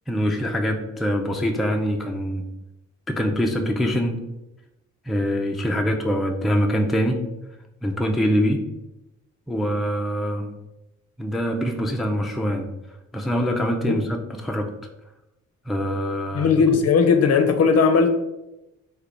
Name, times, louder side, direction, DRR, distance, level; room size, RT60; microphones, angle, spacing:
voice 1, 0.1-2.4 3.1-4.2 5.1-7.2 7.8-8.6 9.5-10.5 11.2-12.7 13.1-14.7 15.7-16.6, equal, ahead, 2 dB, 0.3 m, -24 dB
voice 2, 16.3-18.1, left 5 dB, 55° left, 6 dB, 0.5 m, -17 dB
3.2 x 2.2 x 3.7 m, 0.92 s
cardioid pair, 85°, 30 cm